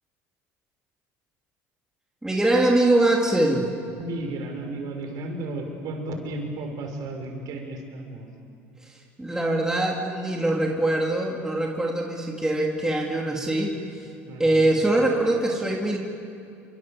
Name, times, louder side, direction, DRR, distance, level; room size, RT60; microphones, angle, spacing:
voice 1, 2.2-3.7 8.9-13.7 14.4-16.0, right 1 dB, 10° right, -1 dB, 3.9 m, -23 dB
voice 2, 3.9-8.3 14.2-15.2, right 2 dB, 55° right, 3 dB, 6.2 m, -34 dB
29.0 x 25.0 x 7.5 m, 2.6 s
hypercardioid pair, 75°, 7 cm